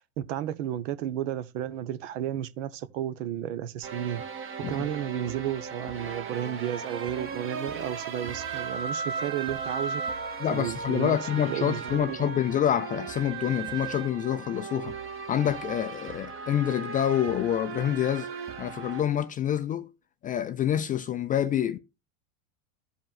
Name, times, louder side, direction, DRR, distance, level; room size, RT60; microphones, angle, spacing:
voice 1, 0.0-11.2 11.5-12.4, right 11 dB, 60° right, 0.9 m, -33 dB
sound 1, 3.8-19.0, right 5 dB, 30° right, 1.4 m, -36 dB
voice 2, 10.4-15.0 15.3-18.3 18.6-19.9 20.2-21.8, left 10 dB, 20° left, 0.4 m, -27 dB
14.5 x 5.3 x 2.4 m
hypercardioid pair, 90°, 41 cm